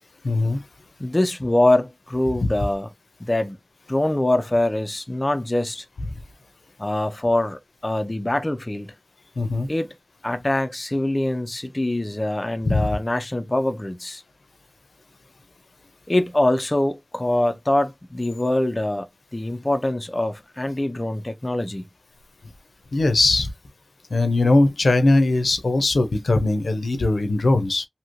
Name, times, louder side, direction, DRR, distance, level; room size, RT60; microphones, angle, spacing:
voice 1, 0.2-0.6 2.4-2.5 9.4-9.7 12.7-12.9 22.9-23.5 24.1-27.9, left 2 dB, 90° left, 0.5 m, -20 dB
voice 2, 1.0-2.9 3.2-3.6 3.9-5.9 6.8-8.9 9.7-9.9 10.2-14.2 16.1-21.9, left 1 dB, 30° left, 0.5 m, -24 dB
3.0 x 2.7 x 2.5 m
wide cardioid pair, 60°, 0 cm